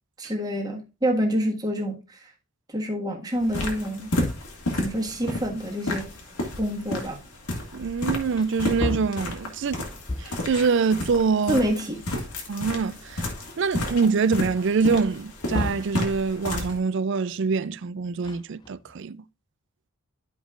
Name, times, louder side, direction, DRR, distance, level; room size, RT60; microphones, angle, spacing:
voice 1, 0.2-2.3 2.7-4.1 4.7-6.1 6.6-7.2 11.5-12.0, equal, 15° right, 1.5 m, -27 dB
sound 1, 3.4-16.8, left 1 dB, 85° left, 2.0 m, -32 dB
voice 2, 7.7-9.8 10.2-11.6 12.5-13.3 13.6-19.2, right 5 dB, 55° right, 0.4 m, -25 dB
Wood, 7.9-8.0 8.3-10.5 11.6-11.7 12.1-13.3 13.8-13.9 15.1-16.0 18.0-19.0, left 2 dB, 20° left, 0.4 m, -34 dB
12.5 x 5.1 x 2.4 m
head